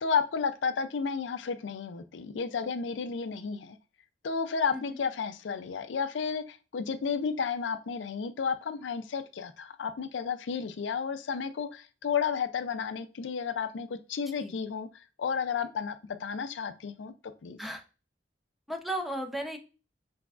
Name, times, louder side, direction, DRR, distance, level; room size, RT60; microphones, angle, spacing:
voice 1, 0.0-3.8 4.2-17.1 17.4-17.6, left 6 dB, 85° left, 10 dB, 0.4 m, -32 dB
voice 2, 18.7-19.6, right 1 dB, ahead, 4 dB, 0.6 m, -34 dB
5.9 x 3.4 x 2.4 m, 0.34 s
head